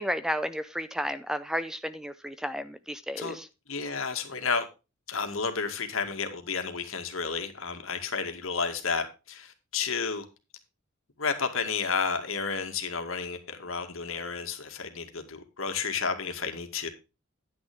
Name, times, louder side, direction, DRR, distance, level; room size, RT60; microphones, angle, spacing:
voice 1, 0.0-3.5, equal, 5° right, 0.5 m, -32 dB
voice 2, 3.7-4.7 5.1-10.2 11.2-16.9, left 5 dB, 70° left, 2.1 m, -31 dB
10.5 x 9.6 x 3.6 m
head